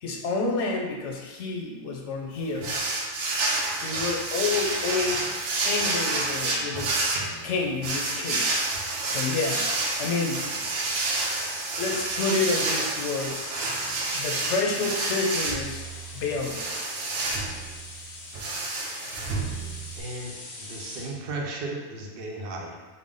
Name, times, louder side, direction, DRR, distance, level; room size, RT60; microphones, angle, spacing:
voice 1, 0.0-2.7 3.8-5.3 5.6-6.9 7.4-8.5 9.1-9.7 10.0-10.5 11.8-13.5 14.1-15.8 16.1-16.7, left 4 dB, 90° left, 0 dB, 0.9 m, -29 dB
sound 1, 2.6-20.0, right 2 dB, 90° right, 0.9 m, -29 dB
sound 2, 10.9-21.2, left 2 dB, 55° left, 0.5 m, -43 dB
voice 2, 19.9-22.8, right 2 dB, 60° right, 0 dB, 0.7 m, -35 dB
3.5 x 2.1 x 3.6 m, 1.3 s
omnidirectional pair, 1.2 m